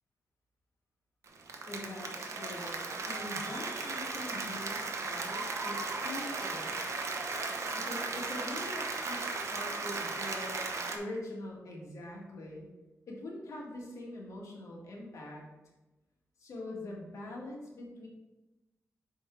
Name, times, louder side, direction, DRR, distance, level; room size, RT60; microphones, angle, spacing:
Applause, 1.3-11.0, right 3 dB, 65° right, 0.9 m, -36 dB
voice 1, 1.7-6.7 7.7-10.7 10.9-12.7 13.1-15.4 16.4-18.1, left 1 dB, 75° left, -2 dB, 1.8 m, -43 dB
6.2 x 4.6 x 4.5 m, 1.1 s
wide cardioid pair, 100°, 5 cm